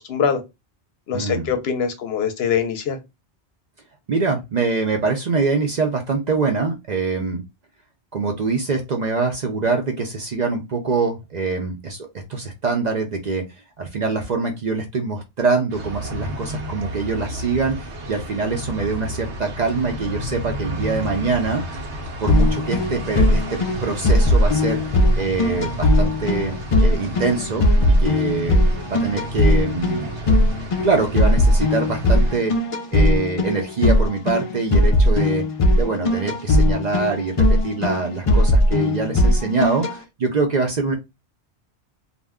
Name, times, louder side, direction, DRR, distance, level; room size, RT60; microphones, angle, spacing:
voice 1, 0.1-0.4 1.1-3.0, left 7 dB, 70° left, 0.8 m, -23 dB
voice 2, 1.1-1.5 4.1-7.4 8.1-13.4 13.8-21.6 22.2-24.8 25.2-26.5 26.8-28.6 28.9-30.1 30.8-32.5 32.9-35.4 35.7-40.9, right 4 dB, 50° right, 0.6 m, -24 dB
sound 1, 15.7-32.4, equal, 80° right, 1.1 m, -32 dB
sound 2, 22.3-39.9, left 1 dB, 50° left, 0.4 m, -18 dB
2.5 x 2.1 x 3.4 m
omnidirectional pair, 1.2 m